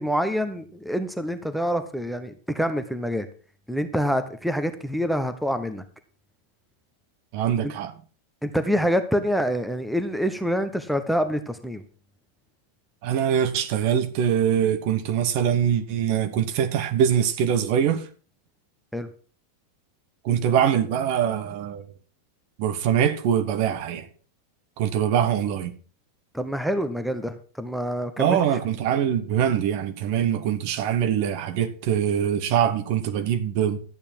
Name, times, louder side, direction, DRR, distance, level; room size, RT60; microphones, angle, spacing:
voice 1, 0.0-3.3 3.7-5.8 7.6-7.7 8.4-11.8 18.9-19.1 26.3-28.4, equal, ahead, 1.1 m, -26 dB
voice 2, 7.3-7.9 13.0-18.1 20.2-21.8 22.6-24.1 24.8-25.7 28.2-33.8, right 9 dB, 45° right, 1.3 m, -23 dB
12.5 x 8.8 x 4.6 m
figure-of-eight pair, 90°, 0 cm